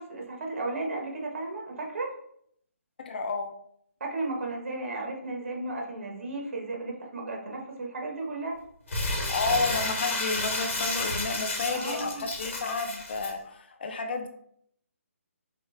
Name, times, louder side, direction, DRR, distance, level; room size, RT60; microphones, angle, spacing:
voice 1, 0.0-2.1 4.0-8.6 11.7-12.2, right 2 dB, 60° right, 0 dB, 1.3 m, -34 dB
voice 2, 3.0-3.5 9.3-14.3, left 3 dB, 45° left, 5 dB, 0.5 m, -31 dB
Crumpling crinkling, 8.9-13.3, left 2 dB, 60° left, 1.2 m, -31 dB
5.6 x 2.4 x 3.3 m, 0.68 s
hypercardioid pair, 165°, 8 cm